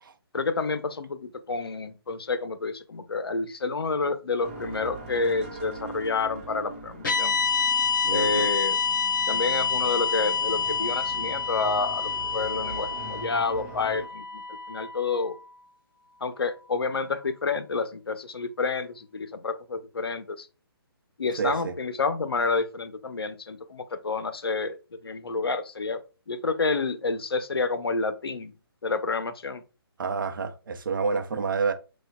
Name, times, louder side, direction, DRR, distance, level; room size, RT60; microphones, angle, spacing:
voice 1, 0.3-7.4 8.1-8.8 9.3-14.4 14.7-15.4 16.2-20.5 21.2-28.5 28.8-29.6, left 4 dB, 70° left, 0.7 m, -29 dB
sound 1, 4.4-14.1, right 3 dB, 30° right, 1.1 m, -42 dB
sound 2, 7.0-15.3, left 5 dB, 55° left, 1.1 m, -27 dB
voice 2, 8.0-8.5 21.4-21.7 30.0-31.7, right 5 dB, 55° right, 0.7 m, -28 dB
6.3 x 2.3 x 2.3 m
figure-of-eight pair, 140°, 13 cm